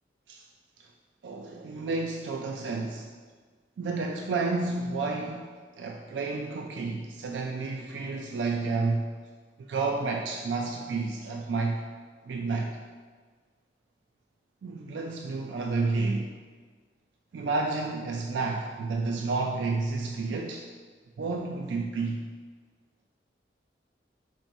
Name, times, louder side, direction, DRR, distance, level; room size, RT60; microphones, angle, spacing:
voice 1, 1.2-3.1 3.8-5.5 5.8-9.1 9.7-11.8 12.3-12.7 14.6-16.3 17.3-20.6 21.2-22.2, right 3 dB, 85° right, 1 dB, 0.3 m, -30 dB
4.4 x 4.3 x 2.7 m, 1.5 s
head